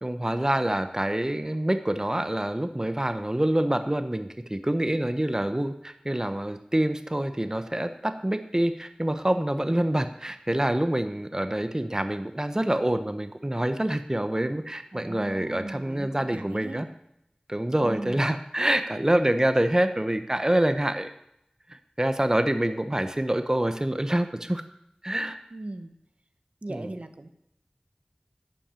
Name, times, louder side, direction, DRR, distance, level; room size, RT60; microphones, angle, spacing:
voice 1, 0.0-16.9 17.5-21.1 21.7-24.6 25.0-25.4 26.7-26.9, right 1 dB, 25° right, 9 dB, 0.8 m, -26 dB
voice 2, 14.9-16.9 17.8-18.4 25.5-25.9 26.6-27.3, right 2 dB, 60° right, 8 dB, 0.9 m, -38 dB
11.5 x 6.0 x 8.9 m, 0.79 s
wide cardioid pair, 45°, 2 cm